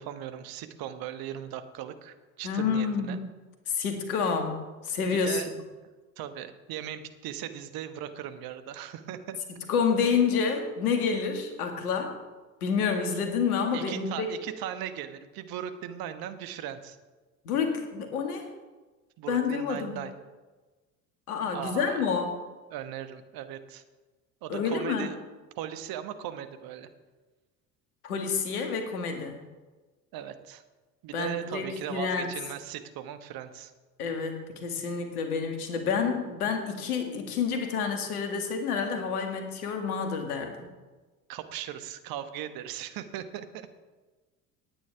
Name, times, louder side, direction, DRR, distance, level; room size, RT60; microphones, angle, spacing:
voice 1, 0.0-3.2 5.1-5.5 6.2-9.4 13.7-17.0 19.2-20.1 21.5-22.1 22.7-23.8 24.4-25.2 25.6-26.9 30.1-30.6 31.0-33.7 38.9-39.2 41.3-43.7, right 10 dB, 50° right, 10 dB, 1.3 m, -38 dB
voice 2, 2.4-3.2 3.7-4.6 4.8-5.4 9.7-12.1 12.6-14.3 17.5-18.5 19.3-20.0 21.3-22.4 24.5-25.1 28.0-29.4 31.1-32.3 34.0-40.7, left 6 dB, 75° left, 5 dB, 2.0 m, -28 dB
18.0 x 9.2 x 3.5 m, 1.3 s
figure-of-eight pair, 65°, 45 cm